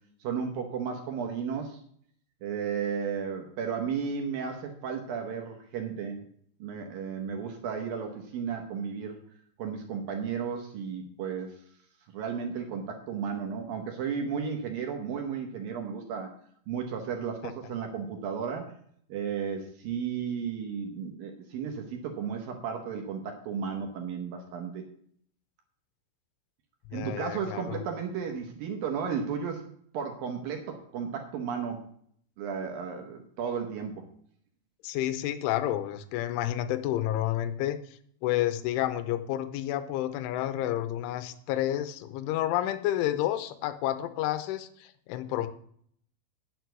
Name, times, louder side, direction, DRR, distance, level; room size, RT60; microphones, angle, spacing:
voice 1, 0.2-1.8 2.4-6.2 6.6-9.2 9.6-11.6 12.1-16.3 16.7-18.7 19.1-24.8 26.9-29.7 29.9-31.8 32.4-34.1, right 6 dB, 70° right, 3 dB, 2.2 m, -34 dB
voice 2, 26.9-27.9 34.8-37.8 38.2-45.5, left 13 dB, 90° left, 12 dB, 3.2 m, -30 dB
9.3 x 6.7 x 7.8 m, 0.64 s
omnidirectional pair, 5.6 m